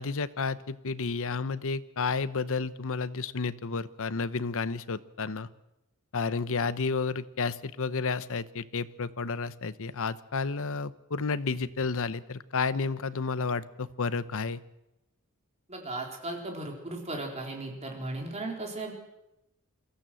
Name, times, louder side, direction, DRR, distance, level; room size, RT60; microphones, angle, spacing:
voice 1, 0.0-5.5 6.1-14.6, left 4 dB, 65° left, 15 dB, 0.9 m, -31 dB
voice 2, 15.7-18.9, right 2 dB, 30° right, 1 dB, 4.1 m, -36 dB
22.5 x 15.0 x 7.7 m, 0.92 s
head